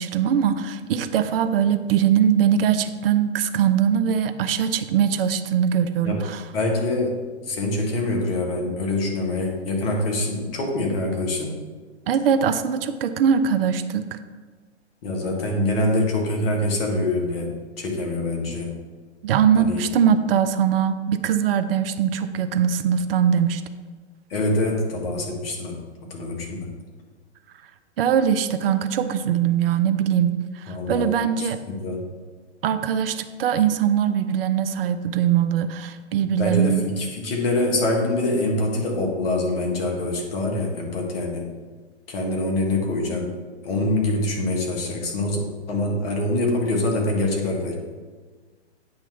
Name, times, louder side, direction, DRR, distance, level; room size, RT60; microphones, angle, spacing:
voice 1, 0.0-6.4 12.1-14.2 19.2-23.6 28.0-31.6 32.6-36.8, right 8 dB, 55° right, 10 dB, 0.6 m, -21 dB
voice 2, 6.5-7.1 7.4-11.6 15.0-18.7 19.6-19.8 24.3-26.7 30.7-31.1 31.4-32.0 36.4-41.5 42.1-43.3 43.6-45.4 45.7-47.7, left 2 dB, 55° left, 0 dB, 1.8 m, -25 dB
8.7 x 3.0 x 5.7 m, 1.4 s
hypercardioid pair, 125°, 34 cm